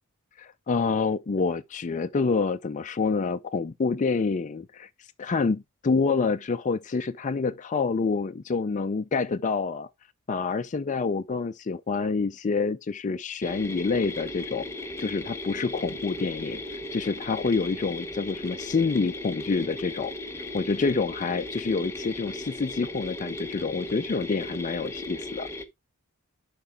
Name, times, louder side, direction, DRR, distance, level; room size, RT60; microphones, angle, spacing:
voice 1, 0.4-4.9 5.2-9.9 10.3-14.7 15.0-16.6 16.9-20.1 20.5-25.5, left 4 dB, 35° left, 0.4 m, -27 dB
sound 1, 13.4-25.6, left 1 dB, 10° left, 1.0 m, -37 dB
11.0 x 4.9 x 3.5 m
head